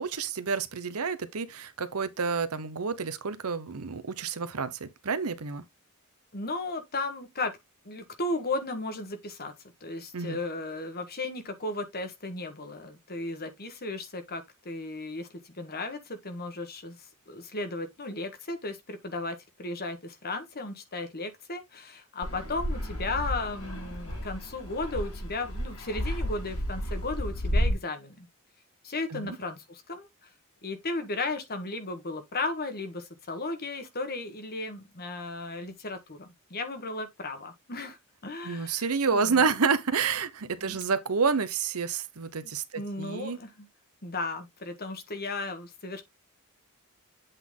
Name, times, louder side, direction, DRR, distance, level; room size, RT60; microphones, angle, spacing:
voice 1, 0.0-5.6 10.1-10.4 29.1-29.4 38.4-43.4, right 5 dB, 75° right, 0.9 m, -29 dB
voice 2, 6.3-7.5 7.8-9.5 9.8-28.3 28.8-30.3 30.6-38.9 39.1-39.5 40.6-40.8 42.4-43.7 44.0-46.0, left 2 dB, 45° left, 1.5 m, -35 dB
Fixed-wing aircraft airplane, 22.2-27.7, equal, 85° left, 5.3 m, -32 dB
8.1 x 4.0 x 3.7 m
head